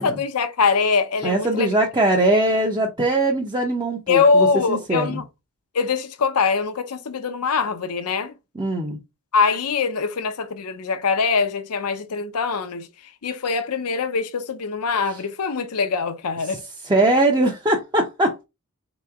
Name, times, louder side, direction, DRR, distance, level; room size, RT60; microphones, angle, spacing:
voice 1, 0.0-1.7 4.1-5.2 5.7-8.3 9.3-12.9 13.2-16.6, left 5 dB, 85° left, 0.6 m, -22 dB
voice 2, 1.2-5.2 8.5-9.0 16.5-16.6 16.8-18.4, right 2 dB, 20° right, 0.7 m, -21 dB
4.3 x 3.0 x 3.5 m
head